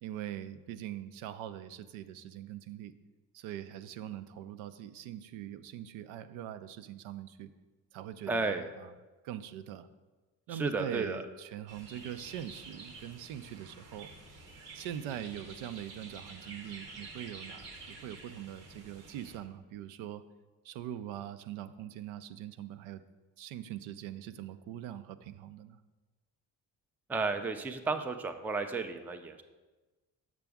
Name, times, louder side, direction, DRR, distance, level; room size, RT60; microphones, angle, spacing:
voice 1, 0.0-2.9 3.3-7.5 7.9-8.9 9.2-9.9 10.5-14.1 14.7-20.2 20.6-23.0 23.4-25.8, right 11 dB, 70° right, 11 dB, 0.5 m, -42 dB
voice 2, 8.3-8.7 10.5-11.2 27.1-29.4, right 3 dB, 5° right, 7 dB, 0.4 m, -33 dB
sound 1, 11.7-19.4, right 3 dB, 90° right, 1.0 m, -49 dB
6.7 x 6.0 x 3.5 m, 1.2 s
hypercardioid pair, 50°, 49 cm